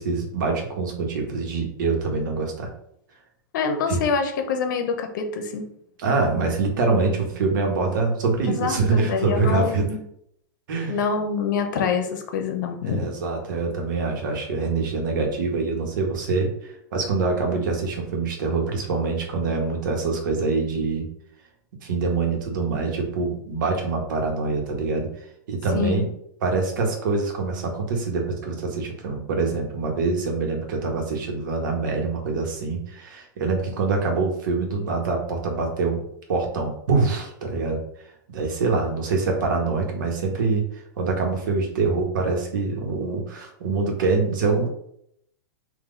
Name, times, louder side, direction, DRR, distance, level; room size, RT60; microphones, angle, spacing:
voice 1, 0.0-2.7 3.9-4.0 6.0-9.9 10.7-11.0 12.8-21.1 21.8-25.1 25.5-26.1 26.4-36.0 36.3-37.8 38.3-40.6 41.0-44.7, right 4 dB, 75° right, 1 dB, 1.3 m, -25 dB
voice 2, 3.5-5.7 8.5-10.0 10.9-13.1 25.7-26.1, left 5 dB, 70° left, 5 dB, 0.8 m, -25 dB
3.9 x 2.7 x 3.9 m, 0.72 s
supercardioid pair, 140°, 11 cm